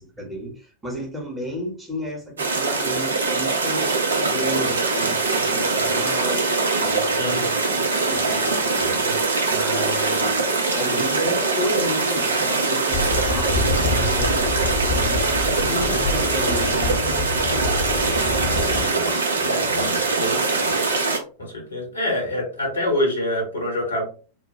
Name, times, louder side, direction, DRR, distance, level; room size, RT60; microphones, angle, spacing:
voice 1, 0.0-17.1 18.4-20.8, equal, 10° right, -1 dB, 1.0 m, -33 dB
sound 1, 2.4-21.2, right 3 dB, 70° right, 0.6 m, -22 dB
sound 2, 12.9-18.9, left 3 dB, 50° left, 0.7 m, -27 dB
voice 2, 18.6-18.9 19.5-19.6 20.2-20.3 21.4-24.0, left 1 dB, 80° left, -1 dB, 1.3 m, -26 dB
2.9 x 2.1 x 2.9 m, 0.38 s
figure-of-eight pair, 90°, 0 cm